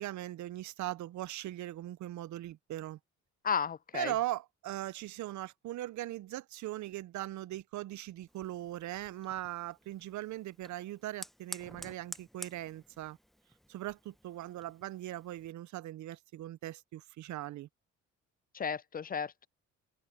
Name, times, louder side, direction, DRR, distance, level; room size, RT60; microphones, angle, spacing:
voice 1, 0.0-3.0 3.9-13.2 13.7-17.7, right 15 dB, 70° right, 0.6 m, -40 dB
voice 2, 3.4-4.1 18.5-19.5, left 6 dB, 30° left, 0.4 m, -33 dB
Fire, 8.3-15.5, equal, ahead, 0.7 m, -51 dB
cardioid pair, 90°, 30 cm